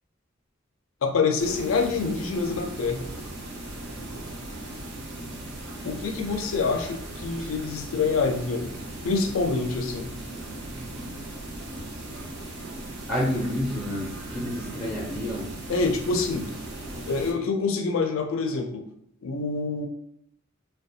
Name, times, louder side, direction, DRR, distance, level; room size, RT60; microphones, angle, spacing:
voice 1, 1.0-3.1 5.8-8.7 9.0-10.1 15.7-16.5 17.1-18.8 19.2-19.9, left 4 dB, 75° left, 4 dB, 0.4 m, -26 dB
sound 1, 1.4-17.3, right 1 dB, 60° right, 0.6 m, -38 dB
voice 2, 13.1-14.1 14.3-15.5, left 1 dB, ahead, -7 dB, 0.5 m, -29 dB
2.4 x 2.2 x 2.6 m, 0.73 s
head